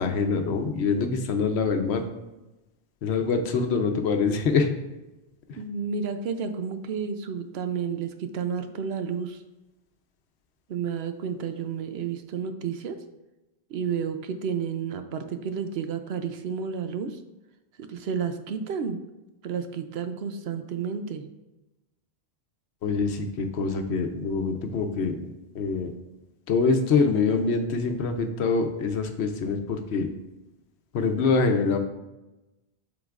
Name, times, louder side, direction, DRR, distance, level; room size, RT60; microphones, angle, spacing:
voice 1, 0.0-2.0 3.0-4.7 22.8-25.2 25.5-25.9 26.5-30.1 30.9-31.8, left 4 dB, 80° left, 6 dB, 1.0 m, -25 dB
voice 2, 5.5-9.4 10.7-13.0 13.7-17.2 17.8-19.0 19.4-21.3, right 6 dB, 70° right, 7 dB, 0.8 m, -31 dB
11.0 x 3.9 x 2.4 m, 1.0 s
omnidirectional pair, 1.1 m